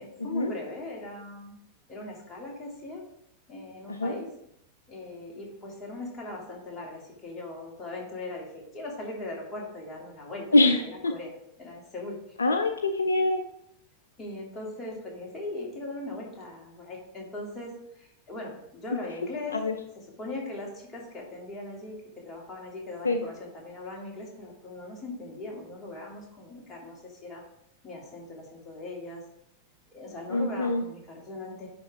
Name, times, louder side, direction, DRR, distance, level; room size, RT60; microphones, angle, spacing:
voice 1, 0.0-1.5 1.9-3.0 3.5-4.3 4.9-11.3 11.6-12.2 14.2-19.6 19.9-22.0 22.2-27.4 27.8-29.2 29.9-31.7, left 2 dB, 20° left, -2 dB, 2.5 m, -39 dB
voice 2, 12.4-13.4 19.5-19.7 23.0-23.2 30.3-30.8, left 2 dB, 75° left, 7 dB, 0.5 m, -23 dB
10.5 x 3.7 x 4.8 m, 0.79 s
figure-of-eight pair, 90°, 0 cm